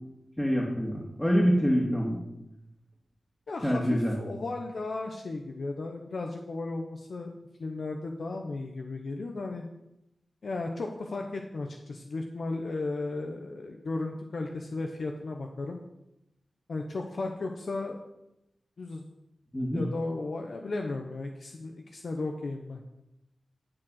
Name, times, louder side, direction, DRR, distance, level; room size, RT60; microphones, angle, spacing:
voice 1, 0.4-2.2 3.6-4.1 19.5-19.8, equal, 15° left, -4 dB, 2.5 m, -25 dB
voice 2, 3.5-7.3 7.6-9.7 10.4-15.8 16.7-18.0 18.8-19.1 19.7-22.8, left 3 dB, 65° left, 3 dB, 0.9 m, -35 dB
12.5 x 4.9 x 6.5 m, 0.89 s
cardioid pair, 55°, 0 cm